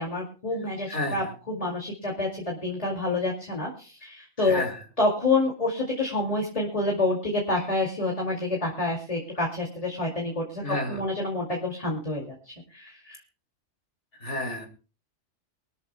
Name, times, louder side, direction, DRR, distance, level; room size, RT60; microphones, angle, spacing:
voice 1, 0.0-4.6 5.0-10.6 10.9-13.2, left 2 dB, 30° left, -1 dB, 2.5 m, -28 dB
voice 2, 0.9-1.3 4.4-4.8 7.5-7.6 10.6-11.0 14.2-14.7, left 1 dB, 70° left, 2 dB, 2.6 m, -31 dB
24.5 x 13.0 x 2.2 m, 0.36 s
omnidirectional pair, 1.2 m